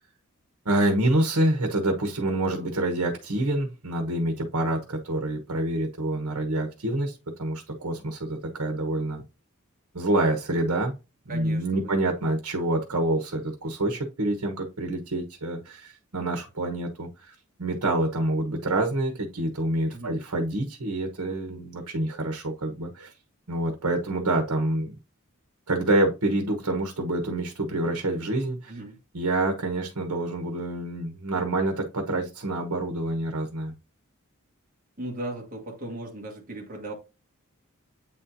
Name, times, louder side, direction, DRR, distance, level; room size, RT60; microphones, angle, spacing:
voice 1, 0.6-9.2 9.9-10.9 11.3-23.1 23.5-24.9 25.7-28.7 29.1-33.7, right 1 dB, 85° right, 1.2 m, -27 dB
voice 2, 11.3-12.1 19.9-20.2 28.7-29.0 35.0-36.9, right 1 dB, 40° right, 1.6 m, -37 dB
8.4 x 4.3 x 2.7 m
head